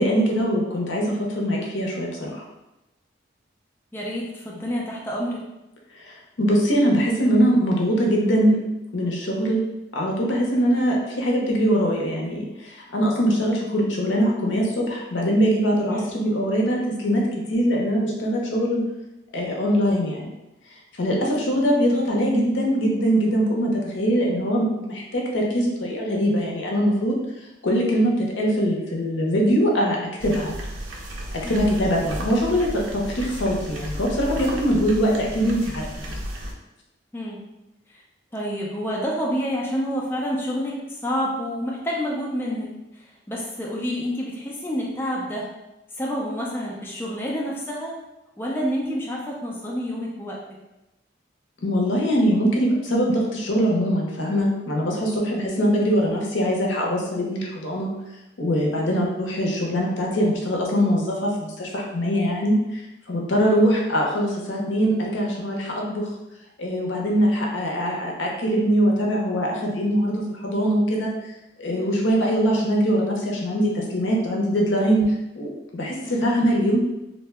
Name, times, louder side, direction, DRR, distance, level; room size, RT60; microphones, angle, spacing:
voice 1, 0.0-2.4 6.0-8.6 8.9-9.6 9.9-17.2 17.5-18.8 19.3-20.3 21.0-27.2 27.6-30.5 31.5-36.1 51.6-57.9 58.4-66.1 66.6-71.1 71.6-75.0 75.4-76.8, equal, 75° left, -1 dB, 0.6 m, -22 dB
voice 2, 3.9-5.4 15.9-16.1 21.1-21.4 31.4-31.7 37.1-37.4 37.9-38.0 38.3-45.5 46.0-48.0 48.4-50.4 63.4-63.6 71.7-72.0 76.0-76.2, equal, 10° left, -3 dB, 0.3 m, -29 dB
sound 1, 30.2-36.5, equal, 85° right, 0.5 m, -33 dB
2.7 x 2.1 x 3.3 m, 0.96 s
head